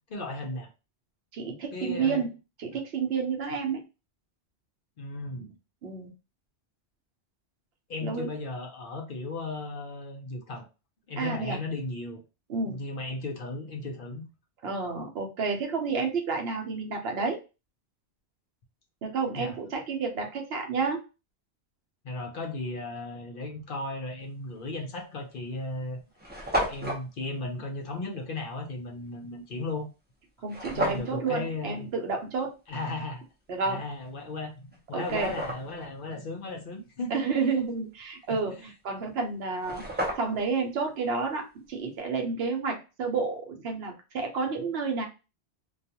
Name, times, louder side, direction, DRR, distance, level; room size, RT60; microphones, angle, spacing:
voice 1, 0.1-0.7 1.7-2.2 5.0-5.5 7.9-10.7 11.1-12.2 12.6-14.3 19.3-19.6 22.0-26.0 26.6-29.9 30.7-31.9 32.7-33.2 33.6-37.2 38.5-38.7, left 2 dB, 60° left, 2 dB, 0.7 m, -36 dB
voice 2, 1.3-2.3 2.6-3.8 5.8-6.1 8.0-8.3 11.2-11.6 12.5-12.8 14.6-17.4 19.0-21.0 30.4-32.5 33.5-33.8 34.9-35.3 37.1-38.5 38.8-39.8 40.1-45.1, right 4 dB, 70° right, 3 dB, 0.9 m, -30 dB
sound 1, 24.7-24.9 25.6-25.7 25.9-26.0 26.2-27.0 30.5-31.1 34.1-34.2 34.7-35.9 39.2-39.3 39.5-40.5, equal, 15° right, 0.5 m, -32 dB
2.3 x 2.3 x 2.7 m, 0.29 s
omnidirectional pair, 1.1 m